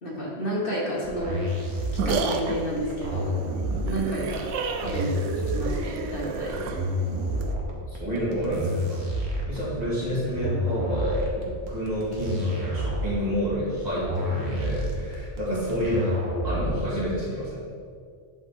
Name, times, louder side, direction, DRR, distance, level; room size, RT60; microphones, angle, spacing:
voice 1, 0.0-1.4 1.9-3.4 3.8-4.5 4.8-6.6 15.5-15.6, equal, 50° left, -5 dB, 1.3 m, -31 dB
sound 1, 1.0-17.0, equal, 65° right, 1.2 m, -29 dB
sound 2, 1.5-7.5, right 4 dB, 80° right, 0.9 m, -31 dB
voice 2, 7.9-9.0 9.5-16.2 16.4-17.6, equal, 35° right, -8 dB, 1.9 m, -29 dB
8.9 x 3.9 x 3.5 m, 2.2 s
omnidirectional pair, 1.2 m